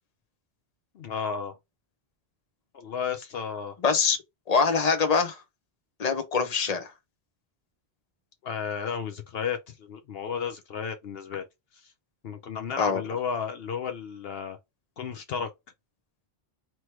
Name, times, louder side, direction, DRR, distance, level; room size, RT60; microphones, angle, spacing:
voice 1, 0.9-1.6 2.7-3.8 8.4-11.4 11.7-11.9 12.2-14.6 15.0-15.5, left 6 dB, 70° left, 0.9 m, -33 dB
voice 2, 3.8-4.2 4.5-5.4 6.0-6.9 12.8-13.0, left 5 dB, 40° left, 1.0 m, -24 dB
3.1 x 3.1 x 4.4 m
omnidirectional pair, 1.1 m